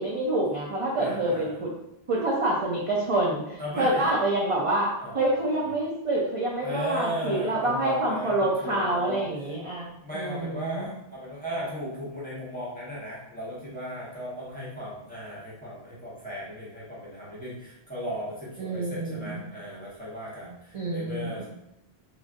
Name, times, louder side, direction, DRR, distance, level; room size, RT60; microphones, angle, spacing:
voice 1, 0.0-1.7 2.1-4.9 5.1-10.9 18.6-19.4 20.7-21.5, right 1 dB, 50° right, -4 dB, 0.4 m, -27 dB
voice 2, 1.0-1.6 3.6-4.1 5.0-5.7 6.6-9.2 10.0-21.5, equal, 10° left, -8 dB, 0.9 m, -36 dB
3.2 x 2.4 x 2.4 m, 0.84 s
omnidirectional pair, 1.1 m